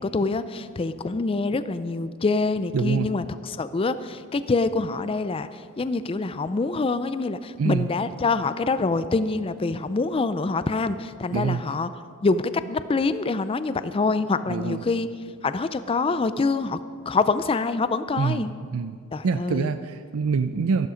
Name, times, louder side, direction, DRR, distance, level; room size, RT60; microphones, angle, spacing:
voice 1, 0.0-11.9 12.2-15.1 15.4-16.8 17.1-18.5 19.1-19.7, left 3 dB, 25° left, 13 dB, 0.4 m, -25 dB
voice 2, 2.7-3.1 7.6-7.9 11.3-11.6 14.5-14.8 18.2-18.4 18.7-19.0 19.2-20.9, right 5 dB, 70° right, 10 dB, 0.4 m, -25 dB
13.0 x 12.0 x 5.1 m, 2.2 s
head